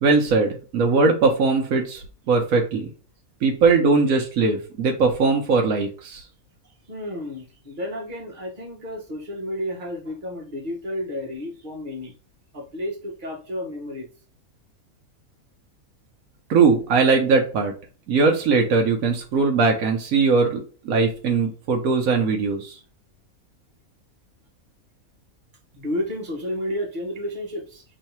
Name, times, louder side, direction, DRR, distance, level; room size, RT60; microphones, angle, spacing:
voice 1, 0.0-2.9 3.4-6.2 16.5-17.7 18.1-22.8, right 4 dB, 75° right, 2 dB, 1.1 m, -20 dB
voice 2, 6.9-12.1 12.5-14.1 25.7-27.8, left 1 dB, 35° right, -1 dB, 1.3 m, -31 dB
3.2 x 2.7 x 4.4 m, 0.38 s
omnidirectional pair, 1.5 m